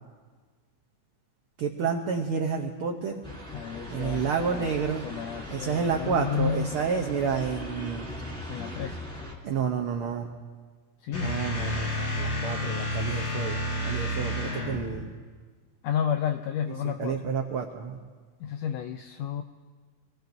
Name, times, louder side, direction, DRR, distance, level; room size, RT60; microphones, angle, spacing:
voice 1, 1.6-3.2 3.9-5.1 5.5-8.1 9.4-10.3 11.2-15.1 17.0-18.0, right 6 dB, 80° right, 3 dB, 1.2 m, -30 dB
sound 1, 3.2-9.3, left 1 dB, ahead, 2.1 m, -39 dB
voice 2, 3.5-4.7 5.0-6.7 8.5-9.0 11.0-11.4 15.8-17.3 18.4-19.4, left 8 dB, 85° left, 7 dB, 1.5 m, -31 dB
sound 2, 11.1-15.1, left 1 dB, 55° left, 3.4 m, -30 dB
26.0 x 17.5 x 2.6 m, 1.5 s
omnidirectional pair, 3.5 m